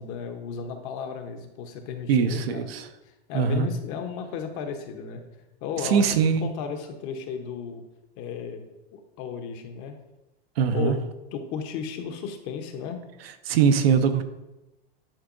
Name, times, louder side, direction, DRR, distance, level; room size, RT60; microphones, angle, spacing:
voice 1, 0.0-2.7 3.3-5.3 5.6-7.8 8.2-8.6 8.9-9.9 10.7-11.0 11.3-13.0, left 6 dB, 40° left, 6 dB, 0.9 m, -34 dB
voice 2, 2.1-2.8 3.3-3.7 5.8-6.5 10.6-10.9 13.5-14.2, right 7 dB, 80° right, 9 dB, 0.7 m, -21 dB
10.0 x 4.6 x 2.6 m, 0.98 s
supercardioid pair, 140°, 30 cm